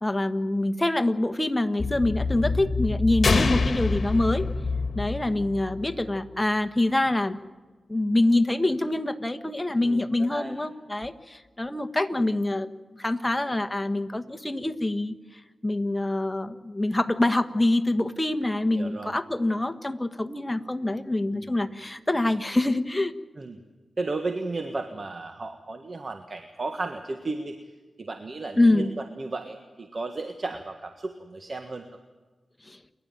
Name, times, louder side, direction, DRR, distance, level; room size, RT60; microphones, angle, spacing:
voice 1, 0.0-4.5 4.9-7.4 7.9-12.7 13.0-15.1 15.6-23.1 28.5-28.9 32.6-32.8, left 2 dB, 15° left, 9 dB, 1.5 m, -25 dB
sound 1, 1.8-6.5, left 3 dB, 45° left, 3.0 m, -29 dB
sound 2, 3.2-5.1, left 4 dB, 60° left, 1.7 m, -26 dB
voice 2, 9.8-10.6 18.7-19.1 21.3-21.5 23.4-23.6 24.0-27.6 28.0-31.8, right 3 dB, 50° right, 6 dB, 1.6 m, -34 dB
29.0 x 11.5 x 9.2 m, 1.3 s
cardioid pair, 55°, 0 cm